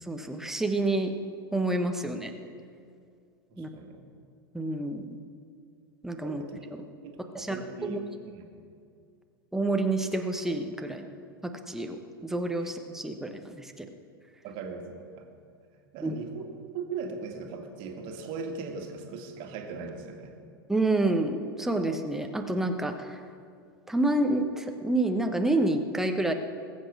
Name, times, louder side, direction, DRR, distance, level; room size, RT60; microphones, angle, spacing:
voice 1, 0.0-1.1 1.5-2.3 3.6-3.7 4.5-5.1 6.0-6.4 7.3-8.0 9.5-11.0 11.4-13.9 16.0-16.1 20.7-23.2 23.9-26.3, right 2 dB, 5° right, 5 dB, 1.2 m, -28 dB
voice 2, 3.5-4.0 6.2-6.7 7.0-8.4 12.6-12.7 14.4-15.3 15.7-20.3, right 5 dB, 40° right, 3 dB, 2.1 m, -39 dB
20.5 x 8.4 x 6.3 m, 2.3 s
figure-of-eight pair, 90°, 12 cm